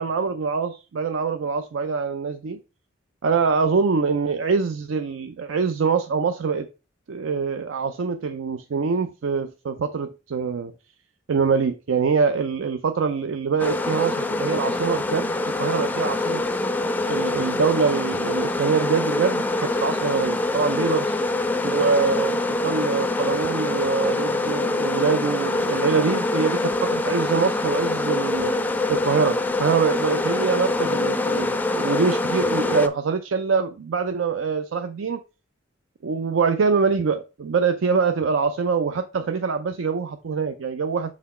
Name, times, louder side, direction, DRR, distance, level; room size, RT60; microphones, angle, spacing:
voice 1, 0.0-2.6 3.2-6.7 7.1-10.7 11.3-16.4 17.1-21.1 21.6-28.5 28.9-35.2 36.0-41.1, right 5 dB, 85° right, 0.5 m, -24 dB
sound 1, 13.6-32.9, left 2 dB, 10° left, 0.3 m, -25 dB
6.1 x 4.0 x 4.2 m
head